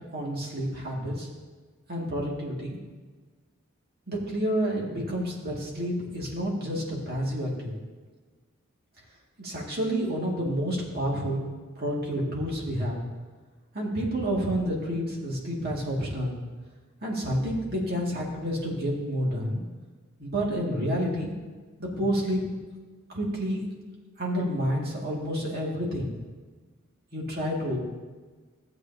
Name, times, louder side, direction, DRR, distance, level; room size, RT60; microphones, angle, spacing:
voice 1, 0.1-1.3 1.9-2.8 4.1-7.7 9.4-11.4 11.8-13.0 13.7-16.4 17.0-19.6 20.2-21.3 21.8-22.4 23.1-23.7 24.2-26.1 27.1-27.8, equal, 50° right, -3 dB, 2.1 m, -29 dB
14.5 x 7.9 x 2.7 m, 1.4 s
head